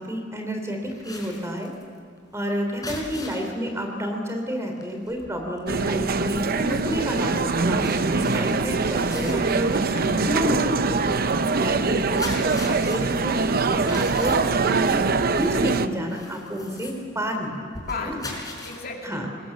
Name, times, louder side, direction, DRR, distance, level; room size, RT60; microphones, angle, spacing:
voice 1, 0.0-1.7 2.3-9.8 10.2-14.4 14.6-17.5 17.8-18.2 19.0-19.3, equal, 15° right, 3 dB, 3.5 m, -30 dB
sound 1, 0.8-3.6 4.0-4.2 4.5-18.8, left 2 dB, 20° left, 4.3 m, -41 dB
sound 2, 5.7-15.9, right 4 dB, 55° right, 0.7 m, -23 dB
voice 2, 9.9-10.4 11.6-11.8 17.9-19.3, left 2 dB, 55° left, 1 dB, 2.6 m, -35 dB
24.0 x 20.5 x 7.4 m, 2.1 s
head